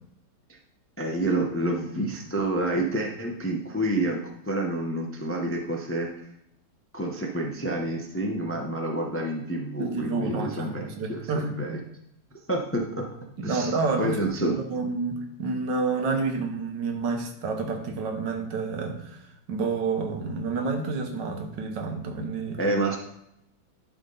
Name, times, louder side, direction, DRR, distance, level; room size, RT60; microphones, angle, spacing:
voice 1, 1.0-6.1 6.9-11.8 12.5-13.1 13.4-14.6 22.6-23.0, right 1 dB, 15° left, 1 dB, 0.4 m, -28 dB
voice 2, 9.8-11.8 13.4-14.2 14.5-19.2 19.5-22.6, right 4 dB, 90° right, 4 dB, 1.7 m, -29 dB
11.0 x 3.7 x 3.9 m, 0.79 s
omnidirectional pair, 1.9 m